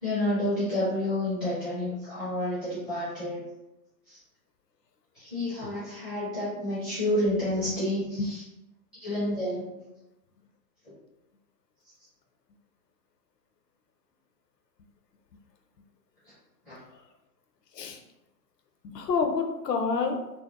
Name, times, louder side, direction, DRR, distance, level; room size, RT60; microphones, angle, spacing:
voice 1, 0.0-3.4 4.1-4.2 5.1-8.4 9.0-9.8 16.7-16.8, left 1 dB, ahead, -16 dB, 0.5 m, -29 dB
voice 2, 18.8-20.3, left 4 dB, 75° left, 4 dB, 0.6 m, -28 dB
2.7 x 2.1 x 2.2 m, 0.94 s
figure-of-eight pair, 120°, 50 cm